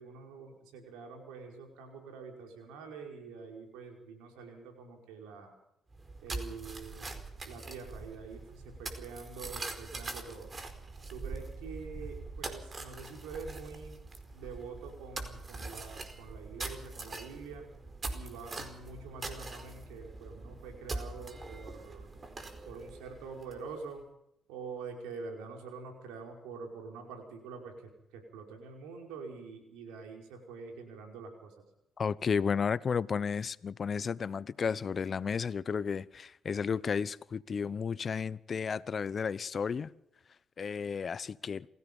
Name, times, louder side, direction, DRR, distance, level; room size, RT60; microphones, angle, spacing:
voice 1, 0.0-5.5 6.2-7.1 7.4-10.5 11.1-14.0 14.3-17.7 18.1-22.1 22.6-24.0 24.5-31.6, right 4 dB, 90° right, 5.3 m, -46 dB
sound 1, 5.9-23.8, right 3 dB, 35° right, 4.6 m, -43 dB
voice 2, 32.0-39.9 40.6-41.7, left 6 dB, 50° left, 1.0 m, -33 dB
28.0 x 16.5 x 5.6 m
supercardioid pair, 60°, 0 cm